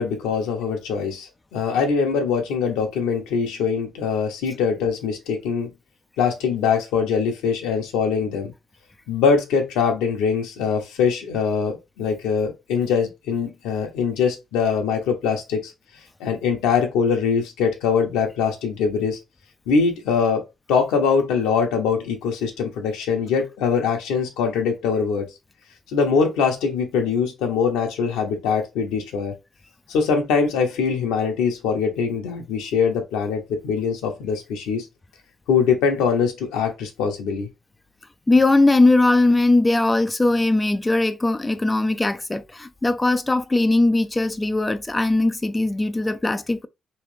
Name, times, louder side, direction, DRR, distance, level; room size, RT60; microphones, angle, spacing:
voice 1, 0.0-5.7 6.2-8.5 9.1-15.7 16.2-19.2 19.7-20.4 20.7-25.2 25.9-29.3 29.9-34.9 35.5-37.5, left 6 dB, 85° left, 0.9 m, -22 dB
voice 2, 38.3-46.7, left 2 dB, 20° left, 0.4 m, -19 dB
3.2 x 2.9 x 3.2 m
supercardioid pair, 55°, 0 cm